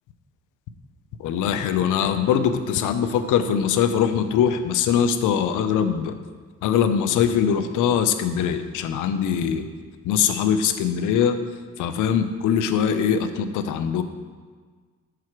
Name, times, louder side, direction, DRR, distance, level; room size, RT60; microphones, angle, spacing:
voice 1, 1.2-6.2 6.6-9.6 10.1-11.4 11.8-14.0, left 8 dB, 85° left, 10 dB, 0.6 m, -22 dB
5.8 x 4.8 x 5.9 m, 1.5 s
cardioid pair, 90°, 30 cm